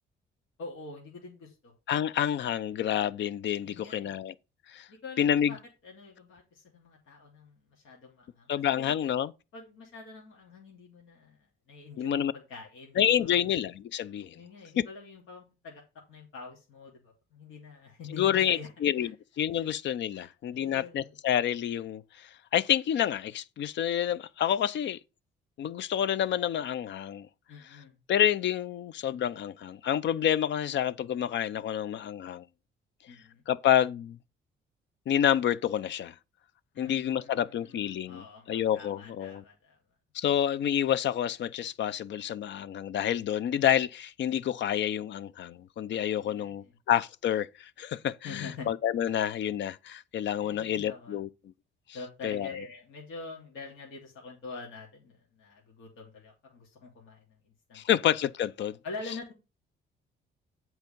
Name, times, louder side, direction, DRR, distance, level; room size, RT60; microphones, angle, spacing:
voice 1, 0.6-1.7 3.6-4.1 4.9-8.9 9.5-11.4 11.7-13.5 14.3-15.8 16.1-18.7 19.0-19.1 19.6-19.7 20.1-21.2 27.5-28.0 33.1-33.4 36.7-39.8 46.2-46.7 48.2-48.7 50.4-51.2 51.9-57.8 58.8-59.3, left 4 dB, 85° left, 2.8 m, -45 dB
voice 2, 1.9-4.3 4.7-4.9 5.2-5.5 8.5-9.3 12.0-12.3 13.0-14.4 14.8-14.9 18.1-25.0 25.6-27.3 28.1-32.4 33.5-34.2 35.1-36.1 36.8-39.4 40.1-51.3 52.2-52.5 57.7-58.8, left 10 dB, 65° left, 0.6 m, -28 dB
8.1 x 4.7 x 5.3 m
cardioid pair, 90°, 20 cm